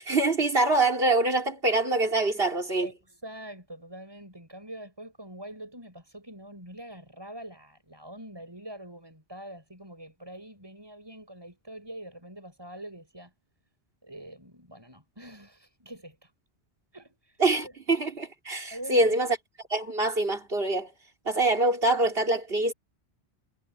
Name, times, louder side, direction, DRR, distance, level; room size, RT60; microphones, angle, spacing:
voice 1, 0.0-2.9 17.4-19.3 19.7-20.9 21.3-22.7, right 2 dB, 65° right, 3.9 m, -25 dB
voice 2, 2.8-13.3 14.0-16.3 16.9-17.7 18.7-19.1, right 1 dB, 20° right, 8.0 m, -44 dB
omnidirectional pair, 1.1 m